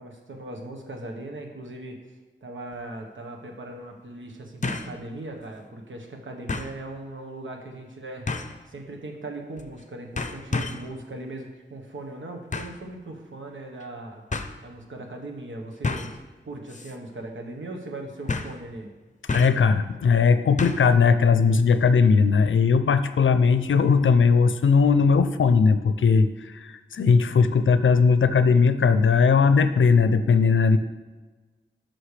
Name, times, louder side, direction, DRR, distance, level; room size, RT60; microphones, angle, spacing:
voice 1, 0.0-2.0 2.4-8.3 8.7-14.2 14.6-16.2 16.4-18.9, right 2 dB, 80° right, 2 dB, 1.3 m, -39 dB
sound 1, 2.7-2.8 4.6-5.0 5.4-5.5 6.5-6.8 8.3-8.6 9.6-9.8 10.2-10.9 12.5-12.8 13.8-13.9 14.3-14.5 15.8-16.2 16.7-17.0 17.2-17.3 18.3-18.6 19.3-19.7 20.6-20.9 21.2-21.3, left 3 dB, 40° left, 0.7 m, -30 dB
voice 2, 19.3-30.8, left 5 dB, 80° left, 11 dB, 0.5 m, -19 dB
11.5 x 6.1 x 3.3 m, 1.3 s
cardioid pair, 45°, 20 cm